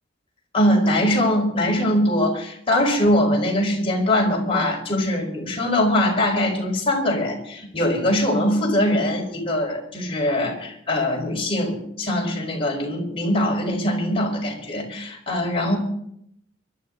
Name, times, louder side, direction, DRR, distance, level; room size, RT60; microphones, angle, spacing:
voice 1, 0.5-15.8, left 1 dB, 30° left, -1 dB, 4.8 m, -22 dB
24.5 x 12.5 x 3.9 m, 0.72 s
head